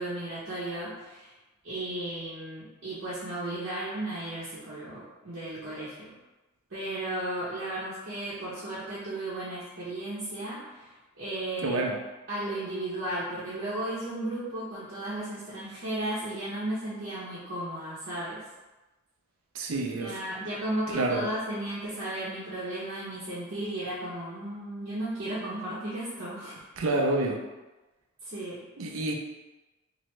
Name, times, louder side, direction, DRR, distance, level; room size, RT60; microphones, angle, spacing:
voice 1, 0.0-1.3 1.6-6.1 6.7-10.9 11.2-11.8 12.3-18.5 19.7-26.6 28.2-28.6, right 1 dB, 55° right, -9 dB, 0.8 m, -35 dB
voice 2, 11.6-12.0 19.5-20.2 20.9-21.3 26.8-27.4 28.8-29.1, right 2 dB, 80° right, 2 dB, 0.5 m, -28 dB
3.0 x 2.6 x 3.1 m, 1.1 s
head